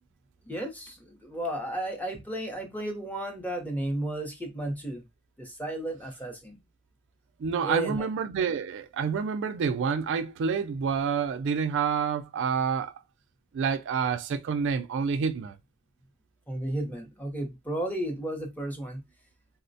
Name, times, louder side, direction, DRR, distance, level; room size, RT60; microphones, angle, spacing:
voice 1, 0.5-0.9 1.2-5.0 5.4-6.5 7.6-8.1 16.5-19.0, right 1 dB, 10° left, 0.7 m, -33 dB
voice 2, 7.4-12.9 13.5-15.6, right 6 dB, 55° right, 0.3 m, -28 dB
3.9 x 2.0 x 2.6 m
head